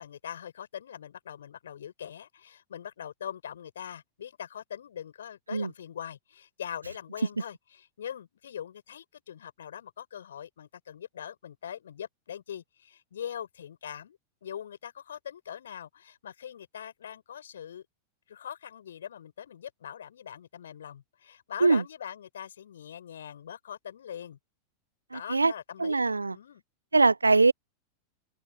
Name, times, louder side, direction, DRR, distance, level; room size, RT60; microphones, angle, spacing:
voice 1, 0.0-17.9 18.3-24.4 25.1-26.0 26.3-26.6, left 9 dB, 65° left, 7.1 m, -42 dB
voice 2, 25.1-25.5 25.8-26.3 26.9-27.5, right 3 dB, 80° right, 0.7 m, -22 dB
open air
figure-of-eight pair, 90°, 0 cm